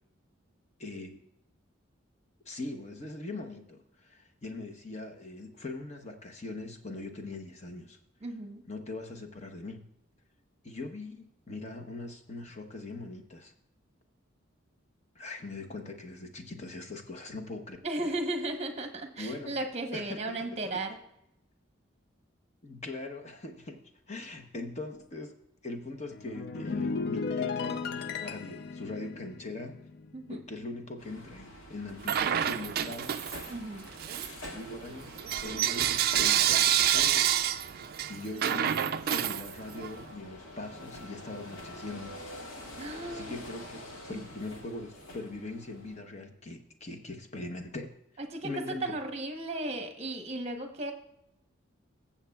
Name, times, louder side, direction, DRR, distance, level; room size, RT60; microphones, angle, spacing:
voice 1, 0.8-1.2 2.5-8.0 8.7-9.8 10.6-13.5 15.1-17.8 19.2-19.6 19.9-20.8 22.6-25.3 25.6-29.8 30.3-33.2 34.5-37.3 38.1-42.2 42.5-42.7 43.1-48.0 48.4-49.0, left 2 dB, 35° left, 4 dB, 0.9 m, -41 dB
voice 2, 8.2-8.6 17.8-21.0 30.1-30.4 33.5-33.9 42.8-43.4 44.1-44.2 48.2-50.9, right 2 dB, 30° right, 5 dB, 0.9 m, -35 dB
sound 1, 26.1-30.7 31.0-31.3, left 4 dB, 50° left, 0.5 m, -36 dB
sound 2, 31.0-46.0, left 1 dB, 85° left, 2.1 m, -47 dB
Bell / Coin (dropping), 32.0-33.6 34.0-40.0, right 10 dB, 50° right, 0.3 m, -28 dB
21.0 x 7.2 x 2.3 m, 0.81 s
head